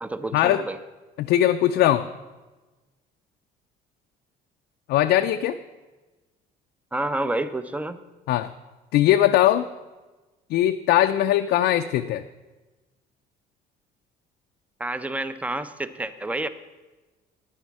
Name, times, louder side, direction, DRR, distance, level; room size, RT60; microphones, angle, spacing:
voice 1, 0.0-0.8 6.9-8.0 14.8-16.5, right 2 dB, 10° right, 12 dB, 0.6 m, -29 dB
voice 2, 1.2-2.1 4.9-5.6 8.3-8.5 8.9-9.7 10.5-12.2, left 12 dB, 75° left, 6 dB, 0.4 m, -20 dB
10.0 x 9.7 x 4.7 m, 1.2 s
cardioid pair, 110°, 17 cm